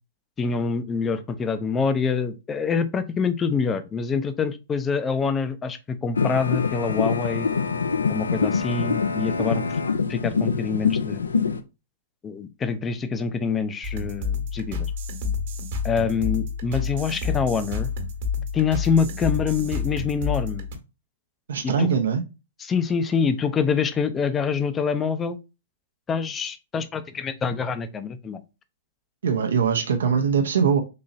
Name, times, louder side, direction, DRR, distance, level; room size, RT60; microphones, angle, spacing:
voice 1, 0.4-7.5 8.1-9.8 10.1-11.2 12.2-14.9 15.8-17.9 18.5-20.7 21.6-21.9 22.6-25.4 26.1-28.4, left 5 dB, 20° left, 0.5 m, -25 dB
sound 1, 6.2-11.6, left 5 dB, 85° left, 0.4 m, -24 dB
sound 2, 13.8-20.8, left 5 dB, 55° right, 1.2 m, -29 dB
voice 2, 21.5-22.2 29.2-30.8, right 6 dB, 70° right, 0.6 m, -22 dB
3.9 x 2.9 x 2.5 m
hypercardioid pair, 120°, 0 cm